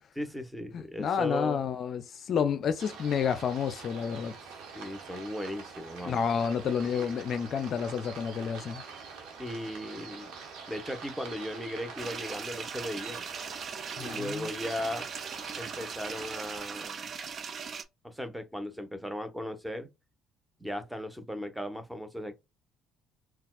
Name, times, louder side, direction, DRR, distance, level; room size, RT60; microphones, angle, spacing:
voice 1, 0.1-1.6 4.7-6.3 6.9-7.1 9.4-10.4 10.7-13.2 14.0-15.1 15.6-17.1 18.0-19.9 20.6-22.3, left 1 dB, 5° right, 1.0 m, -37 dB
voice 2, 0.7-4.3 6.0-8.8 14.0-14.5, left 7 dB, 55° left, 0.4 m, -30 dB
sound 1, 2.8-16.6, right 5 dB, 75° right, 1.2 m, -45 dB
sound 2, 12.0-17.8, right 6 dB, 50° right, 0.5 m, -39 dB
4.0 x 2.3 x 2.3 m
hypercardioid pair, 60°, 0 cm